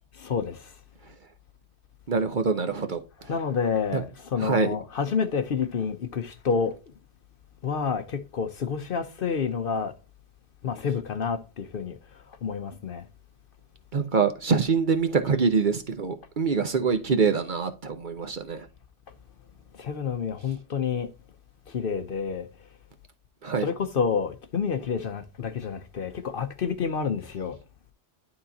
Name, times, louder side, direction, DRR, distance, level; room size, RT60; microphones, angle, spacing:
voice 1, 0.2-0.6 3.3-6.7 7.6-9.9 10.6-11.9 12.4-13.1 19.8-21.1 21.7-22.5 23.6-27.6, left 6 dB, 55° left, 0.8 m, -28 dB
voice 2, 2.1-3.0 3.9-4.0 4.4-4.8 13.9-18.7 23.4-23.7, right 5 dB, 45° right, 0.8 m, -25 dB
11.5 x 3.9 x 2.7 m
omnidirectional pair, 1.2 m